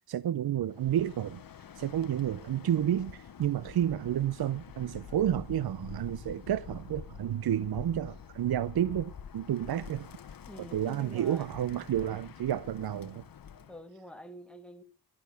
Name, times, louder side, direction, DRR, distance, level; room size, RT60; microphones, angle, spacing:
voice 1, 0.1-1.4 1.8-10.1 10.7-13.3, right 10 dB, 70° right, 0.6 m, -30 dB
Bird, 0.7-13.8, left 8 dB, 60° left, 1.0 m, -48 dB
voice 2, 10.5-11.5 13.7-14.8, equal, 5° left, 1.6 m, -46 dB
15.0 x 12.0 x 6.8 m
wide cardioid pair, 150°, 39 cm